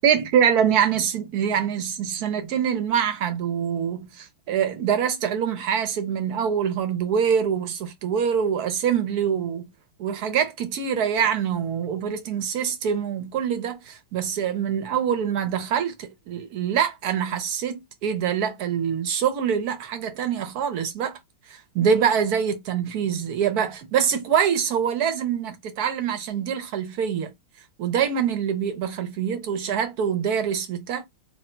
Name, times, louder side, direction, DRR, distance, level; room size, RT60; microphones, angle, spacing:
voice 1, 0.0-9.7 10.0-21.2 21.5-27.3 27.8-31.1, right 8 dB, 60° right, 1.1 m, -24 dB
3.2 x 2.5 x 4.3 m
omnidirectional pair, 2.2 m